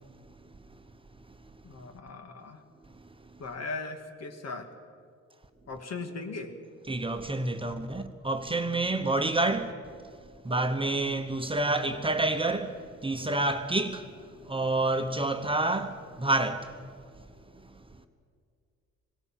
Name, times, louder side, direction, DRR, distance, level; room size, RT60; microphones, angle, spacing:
voice 1, 1.6-2.6 3.4-4.7 5.7-6.5, left 3 dB, 60° left, 2.2 m, -38 dB
voice 2, 6.9-9.7 10.4-16.9, right 2 dB, 15° right, 1.0 m, -28 dB
20.5 x 17.5 x 7.4 m
cardioid pair, 90°, 30 cm